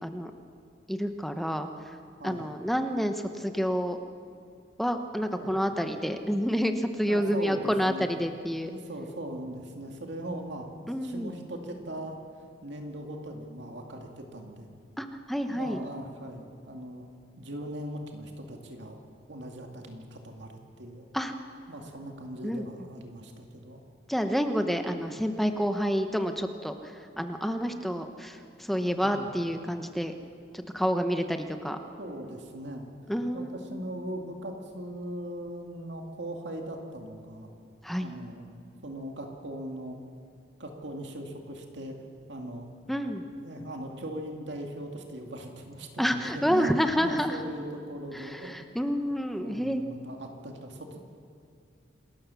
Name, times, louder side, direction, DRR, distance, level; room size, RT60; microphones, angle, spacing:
voice 1, 0.9-2.0 2.2-4.0 4.8-8.7 10.9-11.3 15.0-15.8 21.1-21.3 22.4-22.6 24.1-30.1 30.5-31.8 33.1-33.9 37.8-38.1 42.9-43.2 46.0-47.4 48.1-49.8, equal, ahead, 6 dB, 0.9 m, -29 dB
voice 2, 2.2-2.5 5.3-5.5 7.1-8.1 8.6-10.7 11.0-12.2 12.6-14.7 15.4-17.0 17.4-19.0 19.3-21.1 21.7-23.8 28.9-29.3 32.0-32.9 33.3-37.5 38.0-38.5 38.8-40.0 40.6-42.0 42.3-42.7 43.4-48.6 49.4-51.0, right 1 dB, 75° right, 3 dB, 2.3 m, -39 dB
27.5 x 14.0 x 7.0 m, 2.4 s
head